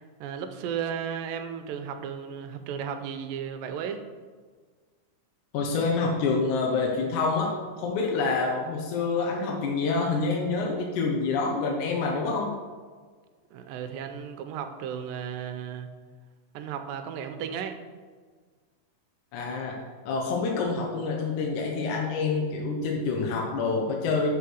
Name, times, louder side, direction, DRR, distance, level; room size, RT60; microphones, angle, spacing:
voice 1, 0.0-4.0 13.5-15.9 16.5-17.8, right 7 dB, 85° right, 7 dB, 2.4 m, -34 dB
voice 2, 5.5-12.5 19.3-19.8 20.1-24.3, left 4 dB, 70° left, 0 dB, 2.2 m, -27 dB
6.1 x 5.8 x 6.3 m, 1.5 s
omnidirectional pair, 3.9 m